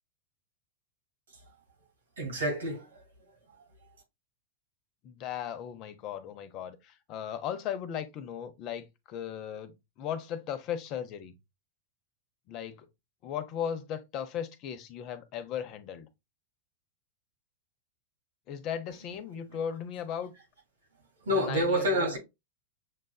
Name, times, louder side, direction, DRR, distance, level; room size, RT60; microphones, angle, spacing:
voice 1, 2.2-3.0 19.1-19.2 21.2-22.2, equal, 90° right, 2.1 m, -28 dB
voice 2, 5.0-11.3 12.5-12.8 13.2-16.1 18.5-20.3 21.3-22.2, left 9 dB, 45° left, 0.8 m, -37 dB
6.5 x 2.5 x 2.3 m
hypercardioid pair, 115°, 0 cm